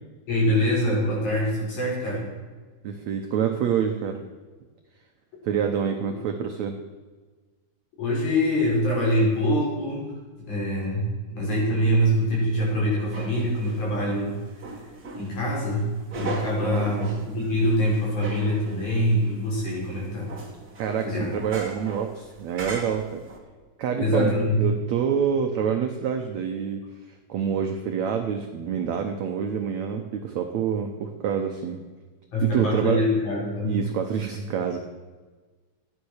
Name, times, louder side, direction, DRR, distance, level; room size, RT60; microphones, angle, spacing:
voice 1, 0.3-2.3 6.0-6.1 8.0-10.1 10.5-14.7 15.1-20.3 21.0-21.3 24.0-24.6 32.3-33.8, equal, 45° left, -5 dB, 6.7 m, -24 dB
voice 2, 2.8-4.2 5.4-6.8 16.6-17.2 20.8-23.2 23.8-26.8 27.1-31.8 32.4-33.0 33.6-34.8, right 7 dB, 80° right, 4 dB, 1.6 m, -27 dB
sound 1, 13.1-23.4, right 3 dB, 35° right, 1.7 m, -39 dB
14.5 x 10.0 x 6.4 m, 1.4 s
omnidirectional pair, 4.6 m